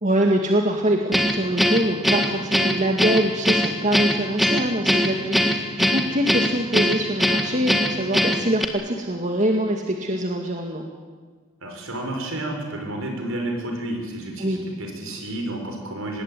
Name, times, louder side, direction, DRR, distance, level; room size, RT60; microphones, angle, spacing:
voice 1, 0.0-10.8 14.4-14.6, right 1 dB, 35° right, 2 dB, 2.1 m, -24 dB
Guitar, 1.1-8.7, equal, ahead, 1.7 m, -21 dB
voice 2, 11.6-16.2, right 1 dB, 65° right, 3 dB, 6.2 m, -31 dB
25.5 x 20.5 x 9.4 m, 1.5 s
head